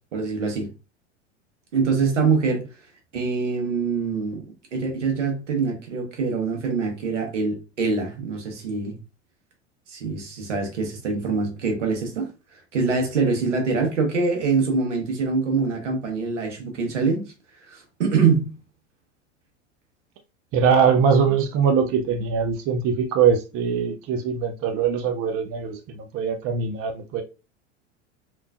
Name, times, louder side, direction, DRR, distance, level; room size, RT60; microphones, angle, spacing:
voice 1, 0.1-0.7 1.7-2.7 3.1-4.4 4.7-9.0 9.9-17.3 17.7-18.5, right 4 dB, 80° right, 1.2 m, -24 dB
voice 2, 20.5-27.2, right 6 dB, 40° right, 0.6 m, -22 dB
3.4 x 3.0 x 2.4 m
hypercardioid pair, 85°, 36 cm